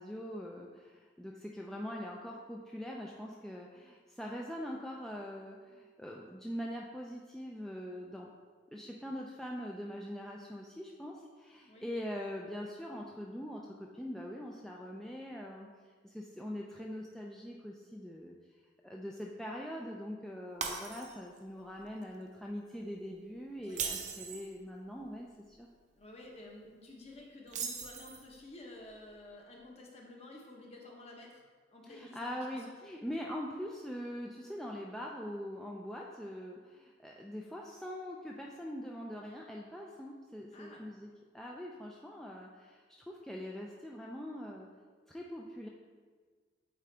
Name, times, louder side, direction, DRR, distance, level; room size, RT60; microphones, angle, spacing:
voice 1, 0.0-8.3 8.7-15.7 16.0-18.3 18.8-25.7 31.9-44.7 45.1-45.7, equal, ahead, -2 dB, 0.3 m, -43 dB
Shatter, 20.6-21.4 21.8-22.0 23.6-24.5 27.5-28.4, right 6 dB, 40° right, 0.6 m, -39 dB
voice 2, 23.6-24.1 26.0-31.4 31.7-32.8 40.5-40.8, left 2 dB, 35° left, -1 dB, 0.9 m, -52 dB
8.3 x 3.8 x 3.3 m, 1.5 s
head